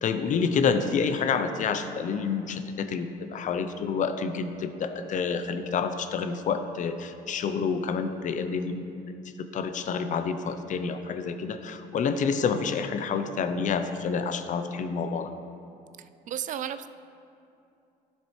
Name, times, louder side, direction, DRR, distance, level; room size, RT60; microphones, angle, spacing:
voice 1, 0.0-8.9 9.4-15.3, left 5 dB, 50° left, 9 dB, 0.6 m, -28 dB
voice 2, 16.3-16.9, right 10 dB, 50° right, 12 dB, 0.4 m, -32 dB
12.0 x 7.4 x 3.2 m, 2.6 s
cardioid pair, 110°, 17 cm